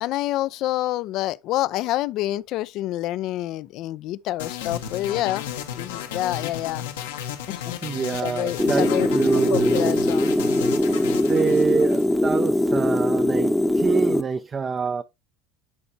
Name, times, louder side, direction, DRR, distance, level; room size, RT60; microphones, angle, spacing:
voice 1, 0.0-5.5 5.7-6.9 7.5-7.8 8.1-9.1 9.5-10.3, left 15 dB, 60° left, 0.4 m, -27 dB
sound 1, 4.4-12.5, left 9 dB, 85° left, 1.1 m, -33 dB
voice 2, 7.8-10.0 11.3-15.0, right 5 dB, 30° right, 0.5 m, -26 dB
sound 2, 8.6-14.2, left 1 dB, 5° left, 0.8 m, -21 dB
10.5 x 4.3 x 2.7 m
hypercardioid pair, 85°, 0 cm